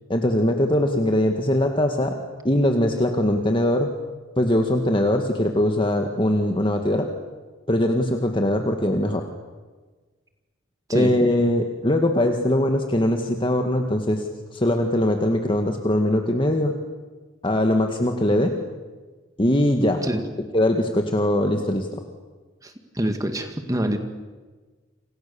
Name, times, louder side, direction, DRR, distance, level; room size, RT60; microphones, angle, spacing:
voice 1, 0.1-2.2 2.4-3.9 4.4-7.1 7.7-9.2 10.9-14.3 14.5-16.7 17.4-18.5 19.4-20.0 20.5-22.0, left 1 dB, 25° left, 4 dB, 1.9 m, -21 dB
voice 2, 22.6-24.0, right 1 dB, 20° right, 6 dB, 1.9 m, -26 dB
29.5 x 26.5 x 7.1 m, 1.3 s
head